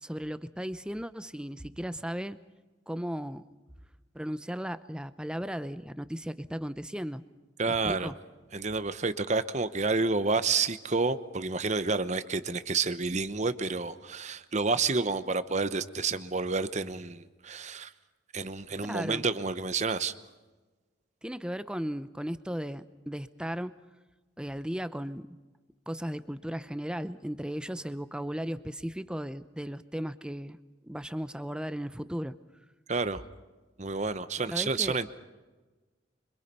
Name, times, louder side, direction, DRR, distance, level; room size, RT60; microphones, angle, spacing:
voice 1, 0.0-2.4 2.9-3.4 4.1-7.2 7.7-8.1 18.8-19.2 21.2-23.7 24.4-25.4 25.9-30.6 30.8-32.4 34.5-35.0, equal, 5° right, 13 dB, 0.7 m, -36 dB
voice 2, 7.6-8.1 8.5-17.9 18.3-20.1 32.9-33.2 33.8-35.1, right 4 dB, 40° right, 12 dB, 0.9 m, -29 dB
27.0 x 25.0 x 5.5 m, 1.2 s
head